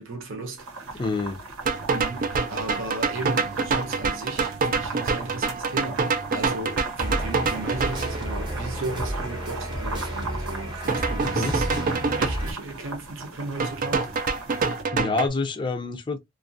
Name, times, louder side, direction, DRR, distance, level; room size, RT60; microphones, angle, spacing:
voice 1, 0.0-1.0 1.9-11.7 12.2-14.1, right 3 dB, 65° right, 0.8 m, -36 dB
sound 1, 0.6-14.8, right 3 dB, 85° right, 1.0 m, -38 dB
voice 2, 1.0-1.4 11.3-11.5 14.9-16.2, left 3 dB, 25° left, 0.5 m, -27 dB
sound 2, 1.7-8.2 10.9-12.3 13.6-15.3, right 4 dB, 40° right, 0.4 m, -26 dB
sound 3, 7.0-12.5, equal, 20° right, 0.8 m, -31 dB
2.5 x 2.3 x 2.5 m
head